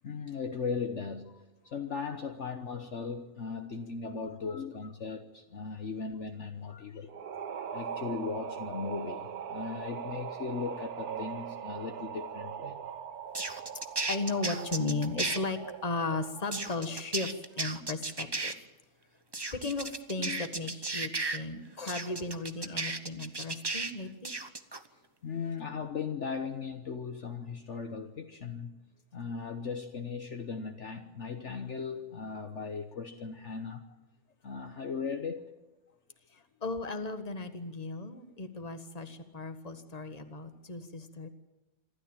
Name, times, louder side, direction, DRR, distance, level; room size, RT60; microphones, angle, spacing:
voice 1, 0.0-1.4 1.6-7.2 7.7-12.8 20.2-20.4 25.2-28.8 29.1-33.8 34.4-35.5, left 5 dB, 50° left, 6 dB, 1.3 m, -38 dB
sound 1, 7.1-16.8, right 7 dB, 75° right, 1.6 m, -41 dB
sound 2, 13.3-15.4 16.5-18.5 19.3-21.4 21.9-23.9 24.2-24.8, right 3 dB, 20° right, 0.9 m, -34 dB
voice 2, 14.1-18.5 19.5-24.3 36.3-41.3, left 3 dB, 25° left, 7 dB, 1.6 m, -36 dB
26.5 x 13.0 x 8.9 m, 1.0 s
omnidirectional pair, 1.6 m